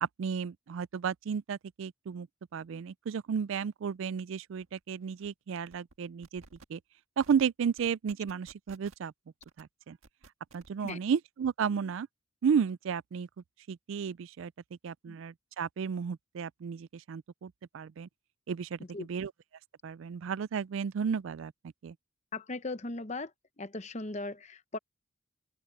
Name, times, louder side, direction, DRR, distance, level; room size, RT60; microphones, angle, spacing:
voice 1, 0.0-6.4 6.7-6.8 7.2-9.1 9.6-10.0 10.5-12.1 12.4-13.3 13.7-14.5 14.8-18.1 18.5-19.3 19.8-21.5 21.8-21.9, right 7 dB, 70° right, 0.3 m, -33 dB
sound 1, 4.6-4.7 5.0-5.3 5.7-6.0 6.2-6.7 7.2-7.4 7.8-9.1 9.4-9.6 10.0-11.1, right 3 dB, 85° right, 1.7 m, -56 dB
voice 2, 22.3-23.3 23.6-24.8, left 2 dB, 35° left, 0.8 m, -38 dB
open air
head